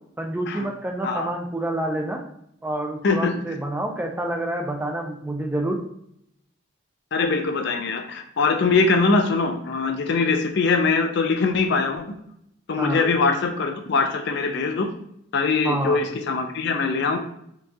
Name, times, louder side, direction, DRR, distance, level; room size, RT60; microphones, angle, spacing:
voice 1, 0.2-2.2 2.6-5.8 12.8-13.1 15.6-16.0, right 1 dB, 10° right, 2 dB, 0.3 m, -28 dB
voice 2, 3.0-3.4 7.1-12.0 12.7-14.9 15.3-17.2, left 4 dB, 55° left, 5 dB, 0.4 m, -22 dB
4.5 x 2.3 x 2.7 m, 0.73 s
head